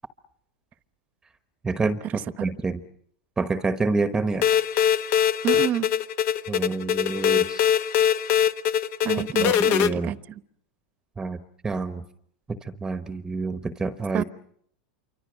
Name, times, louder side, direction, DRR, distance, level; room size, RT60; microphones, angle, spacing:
voice 1, 1.6-2.0 2.4-2.8 3.4-4.5 6.5-7.7 9.4-10.1 11.2-12.0 12.5-14.2, right 3 dB, 15° right, 10 dB, 1.1 m, -27 dB
sound 1, 4.4-9.9, left 9 dB, 50° left, 1.2 m, -22 dB
voice 2, 5.4-5.9 9.0-10.4 14.1-14.2, right 11 dB, 40° right, 15 dB, 1.0 m, -29 dB
28.0 x 25.0 x 6.3 m, 0.67 s
supercardioid pair, 120°, 4 cm